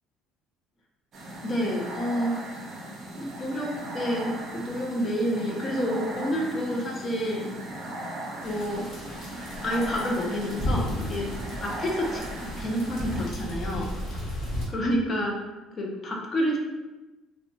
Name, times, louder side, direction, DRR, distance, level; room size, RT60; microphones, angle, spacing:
sound 1, 1.1-13.3, right 1 dB, 35° right, 0.5 m, -38 dB
voice 1, 1.4-2.4 3.1-7.5 8.4-8.9 9.6-11.3 11.6-13.9 14.7-15.4 15.8-16.6, equal, 25° left, -1 dB, 0.4 m, -29 dB
sound 2, 8.4-14.7, equal, 45° left, 0.9 m, -34 dB
2.2 x 2.1 x 3.7 m, 1.1 s
cardioid pair, 160°, 0 cm